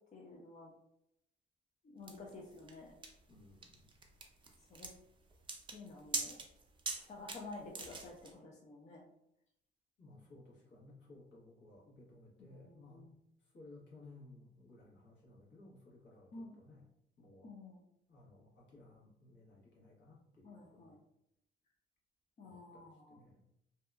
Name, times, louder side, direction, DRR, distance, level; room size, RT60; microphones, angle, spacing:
voice 1, 0.1-0.7 1.9-2.9 4.7-4.9 5.7-6.3 7.0-9.0 12.4-13.2 16.3-16.6 17.4-17.8 20.4-21.0 22.4-23.2, left 3 dB, 35° left, -2 dB, 0.5 m, -51 dB
sound 1, 2.1-8.3, right 3 dB, 25° right, 0.4 m, -43 dB
voice 2, 3.3-3.9 10.0-13.1 13.5-16.9 17.2-17.5 18.1-21.0 22.4-23.4, left 2 dB, 65° left, -4 dB, 1.1 m, -59 dB
2.7 x 2.2 x 2.3 m, 0.78 s
cardioid pair, 90°, 20 cm